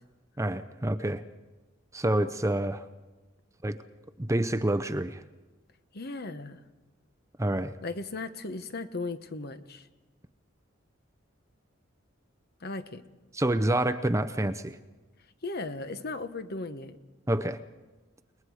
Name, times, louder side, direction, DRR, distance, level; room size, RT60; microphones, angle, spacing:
voice 1, 0.4-1.2 1.9-2.8 3.6-3.8 4.2-5.2 7.4-7.7 13.3-14.8 17.3-17.6, right 1 dB, 15° right, 11 dB, 0.7 m, -27 dB
voice 2, 5.9-6.6 7.8-9.9 12.6-13.0 15.4-17.0, left 3 dB, 50° left, 10 dB, 1.1 m, -36 dB
30.0 x 20.5 x 4.9 m, 1.2 s
head